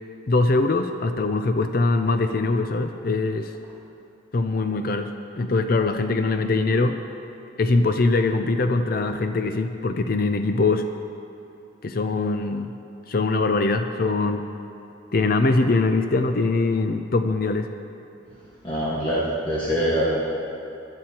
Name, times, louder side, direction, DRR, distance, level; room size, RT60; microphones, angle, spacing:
voice 1, 0.3-3.5 4.3-7.0 7.6-10.9 11.8-12.7 13.1-14.5 15.1-17.7, left 3 dB, 50° left, 7 dB, 0.5 m, -22 dB
voice 2, 18.6-20.3, equal, 25° left, -8 dB, 1.5 m, -24 dB
21.5 x 11.5 x 2.9 m, 2.7 s
head